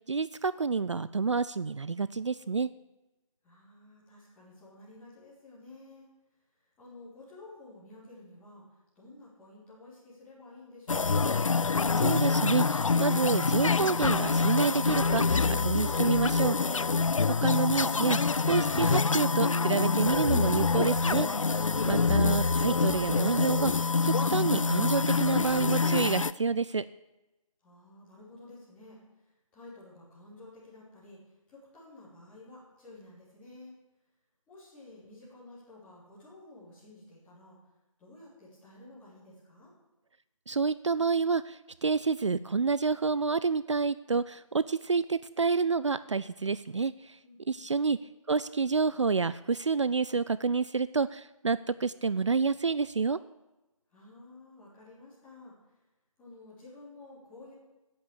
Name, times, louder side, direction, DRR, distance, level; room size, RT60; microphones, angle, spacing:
voice 1, 0.1-2.7 12.0-16.6 17.4-18.2 18.5-21.3 21.8-26.9 40.5-47.2 47.5-48.0 48.3-53.2, right 4 dB, 60° right, 16 dB, 0.4 m, -28 dB
voice 2, 3.4-6.1 6.8-8.6 8.9-11.4 27.6-29.0 29.5-31.2 31.5-33.7 34.5-37.6 38.0-39.7 47.2-47.7 53.9-55.5 56.2-57.5, left 2 dB, 5° left, -9 dB, 3.3 m, -52 dB
sound 1, 10.9-26.3, left 4 dB, 70° left, 0.4 m, -26 dB
10.5 x 8.5 x 8.1 m, 1.0 s
figure-of-eight pair, 155°, 18 cm